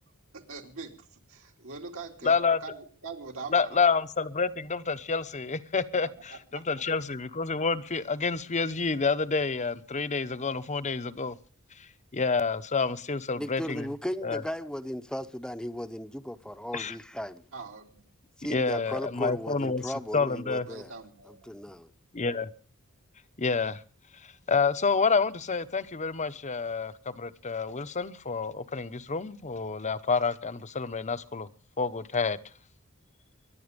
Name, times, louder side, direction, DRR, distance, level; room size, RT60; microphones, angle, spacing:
voice 1, 0.3-0.9 1.3-2.3 2.6-3.8 6.5-6.6 17.5-18.0 20.6-21.5, right 4 dB, 70° right, 3.1 m, -42 dB
voice 2, 2.2-2.6 3.5-11.4 11.8-11.9 12.1-13.9 14.2-14.4 16.7-16.9 18.5-20.7 22.1-22.5 23.4-23.8 24.5-31.5 31.8-32.4, left 4 dB, 35° left, 0.9 m, -28 dB
voice 3, 13.3-17.5 18.4-20.9 21.2-21.9, equal, 5° left, 0.9 m, -36 dB
24.5 x 11.0 x 5.2 m
head